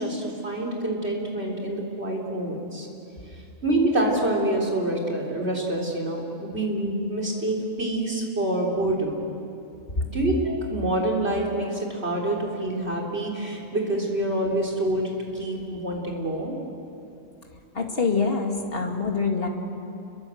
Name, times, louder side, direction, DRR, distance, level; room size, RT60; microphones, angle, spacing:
voice 1, 0.0-2.9 3.3-9.2 10.1-16.6, right 1 dB, 50° right, -1 dB, 4.2 m, -27 dB
voice 2, 17.7-19.5, left 4 dB, 45° left, 2 dB, 2.6 m, -25 dB
29.5 x 22.0 x 7.9 m, 2.7 s
omnidirectional pair, 1.4 m